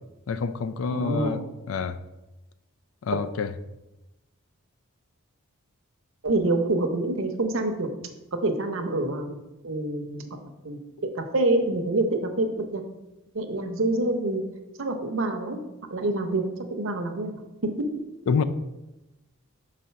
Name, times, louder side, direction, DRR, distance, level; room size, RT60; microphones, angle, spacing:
voice 1, 0.3-2.0 3.0-3.5 18.3-18.4, left 5 dB, 65° left, 0.4 m, -27 dB
voice 2, 0.9-1.4 3.1-3.2 6.2-7.9 8.3-9.4 9.6-10.4 10.6-10.8 11.2-12.8 13.3-14.4 14.8-15.6 15.9-18.0, right 2 dB, 60° right, 0.7 m, -26 dB
5.0 x 4.2 x 5.7 m
head